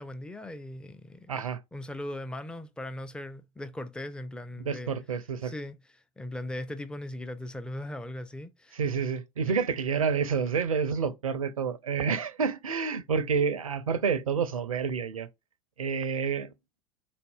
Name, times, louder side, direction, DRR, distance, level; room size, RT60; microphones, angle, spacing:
voice 1, 0.0-1.3 1.7-4.9 5.4-5.8 6.2-8.8 9.5-9.6, left 1 dB, 5° left, 0.4 m, -39 dB
voice 2, 1.3-1.6 4.6-5.5 8.7-15.3 15.8-16.5, right 6 dB, 80° right, 0.5 m, -29 dB
3.9 x 2.6 x 2.2 m
figure-of-eight pair, 75°, 17 cm